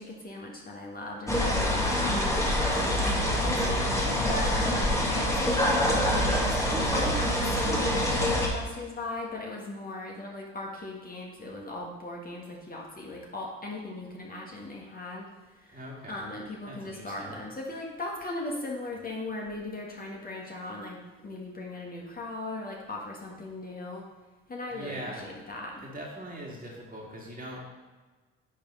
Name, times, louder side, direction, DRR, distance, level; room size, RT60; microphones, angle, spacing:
voice 1, 0.0-4.0 4.3-24.1 24.5-25.9, left 2 dB, 30° left, -2 dB, 1.7 m, -38 dB
sound 1, 1.3-8.5, equal, 10° left, 1.8 m, -26 dB
voice 2, 3.9-4.4 15.7-16.3 16.7-17.4 24.7-25.3 25.9-27.6, equal, 25° right, -3 dB, 2.3 m, -41 dB
10.0 x 3.5 x 3.9 m, 1.3 s
hypercardioid pair, 60°, 32 cm